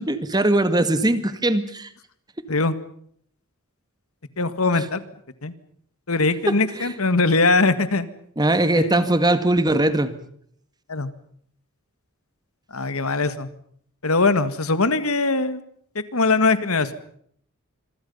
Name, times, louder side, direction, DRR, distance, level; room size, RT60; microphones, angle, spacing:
voice 1, 0.0-1.9 6.5-6.9 8.4-10.1, right 1 dB, 20° right, 11 dB, 2.0 m, -20 dB
voice 2, 4.4-5.0 5.4-5.5 6.1-8.1 8.7-9.1 10.9-11.1 12.7-13.5 14.0-15.6 16.0-16.9, left 3 dB, 85° left, 13 dB, 1.8 m, -21 dB
26.0 x 24.5 x 5.6 m, 0.65 s
head